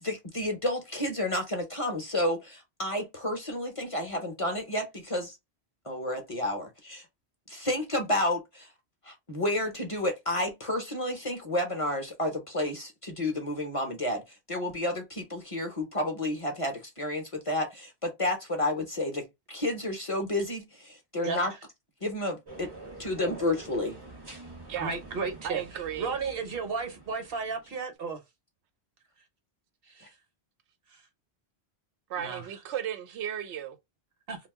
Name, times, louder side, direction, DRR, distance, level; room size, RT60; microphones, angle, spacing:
voice 1, 0.0-5.4 5.8-7.1 7.5-8.7 9.0-21.5 22.0-22.7 23.0-24.0, left 1 dB, 35° left, 0.7 m, -31 dB
sound 1, 22.4-27.8, right 2 dB, 25° right, 0.6 m, -46 dB
voice 2, 24.8-28.2 29.9-30.1 30.9-31.0 32.2-32.5 34.3-34.4, right 4 dB, 60° right, 1.0 m, -34 dB
voice 3, 25.4-26.1 32.1-33.7, right 9 dB, 85° right, 0.8 m, -35 dB
2.5 x 2.3 x 3.5 m
omnidirectional pair, 1.1 m